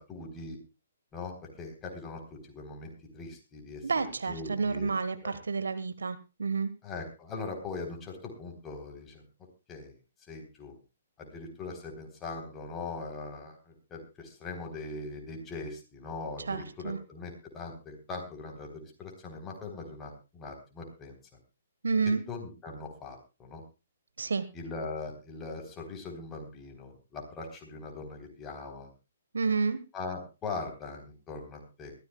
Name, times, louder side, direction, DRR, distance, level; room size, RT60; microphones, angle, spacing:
voice 1, 0.1-0.6 1.1-3.8 4.3-4.9 5.2-5.4 6.8-9.2 9.7-9.9 10.3-10.7 11.2-21.2 22.1-23.6 24.5-28.9 29.9-31.9, left 3 dB, 15° left, 2 dB, 3.7 m, -41 dB
voice 2, 3.8-6.7 16.5-17.0 21.8-22.2 24.2-24.4 29.3-29.8, right 4 dB, 70° right, 12 dB, 1.3 m, -30 dB
22.0 x 14.0 x 2.3 m, 0.29 s
figure-of-eight pair, 125°, 0 cm